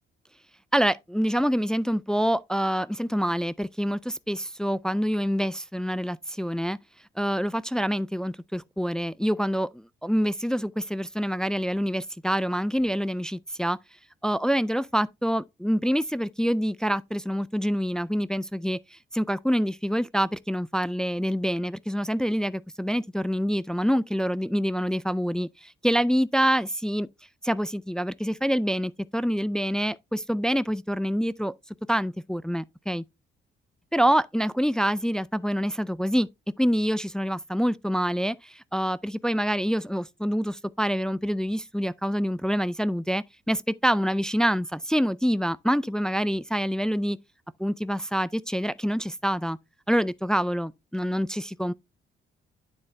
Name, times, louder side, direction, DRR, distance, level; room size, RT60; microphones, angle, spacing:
voice 1, 0.7-6.8 7.2-13.8 14.2-27.1 27.4-31.5 31.9-33.0 33.9-36.3 36.6-47.2 47.6-49.6 49.9-51.7, equal, 5° left, 0.3 m, -26 dB
9.7 x 3.9 x 3.2 m
cardioid pair, 90°, 20 cm